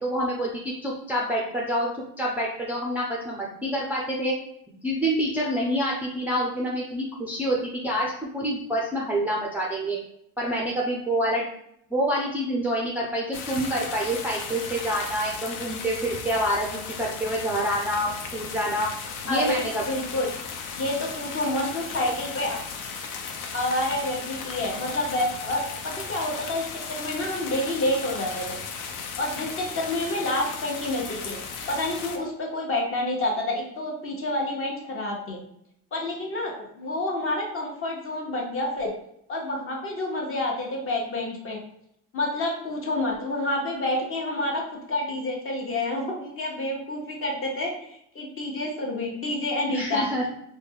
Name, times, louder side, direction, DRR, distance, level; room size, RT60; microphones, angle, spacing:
voice 1, 0.0-1.9 2.2-4.3 4.8-10.0 10.4-11.4 11.9-18.9 19.2-19.8 49.7-50.3, equal, 5° right, -4 dB, 0.5 m, -27 dB
sound 1, 13.3-32.2, left 5 dB, 55° left, 0.6 m, -36 dB
voice 2, 19.9-20.3 20.7-22.6 23.5-28.4 29.2-31.4 31.7-35.4 35.9-38.9 39.3-41.6 42.1-50.1, left 1 dB, 35° left, 0 dB, 1.0 m, -28 dB
4.0 x 2.2 x 3.4 m, 0.72 s
cardioid pair, 120°, 38 cm